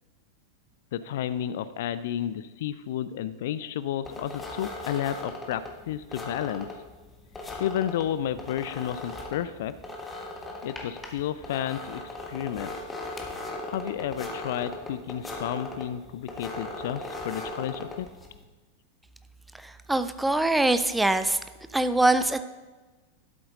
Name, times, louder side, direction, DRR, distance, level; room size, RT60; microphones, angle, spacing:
voice 1, 0.9-6.7 7.6-9.8 10.6-12.0 12.3-12.7 13.7-18.1, left 10 dB, 55° left, 16 dB, 0.4 m, -31 dB
sound 1, 4.0-18.4, left 2 dB, 10° left, 1.5 m, -39 dB
voice 2, 19.6-21.4 21.7-22.4, right 2 dB, 5° right, 11 dB, 0.5 m, -23 dB
12.5 x 7.7 x 3.8 m, 1.2 s
figure-of-eight pair, 90°, 0 cm